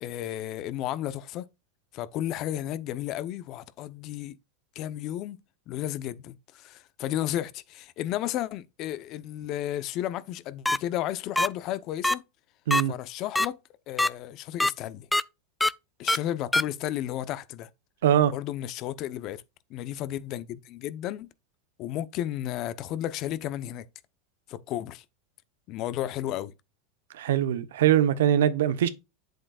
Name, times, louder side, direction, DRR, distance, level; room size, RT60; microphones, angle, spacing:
voice 1, 0.0-1.5 1.9-4.4 4.7-12.2 12.9-13.6 13.9-15.1 16.0-17.7 18.3-19.4 19.7-21.3 21.8-23.8 24.5-25.0 25.7-26.5, left 12 dB, 45° left, 0.7 m, -33 dB
sound 1, 10.6-10.8 11.4-11.5 12.0-12.1 12.7-12.8 13.3-13.5 14.0-14.1 14.6-14.7 15.1-15.2 15.6-15.7 16.1-16.2 16.5-16.6, left 2 dB, 5° left, 0.3 m, -22 dB
voice 2, 18.0-18.3 27.1-28.9, right 11 dB, 85° right, 0.9 m, -22 dB
7.8 x 7.7 x 2.4 m
supercardioid pair, 125°, 0 cm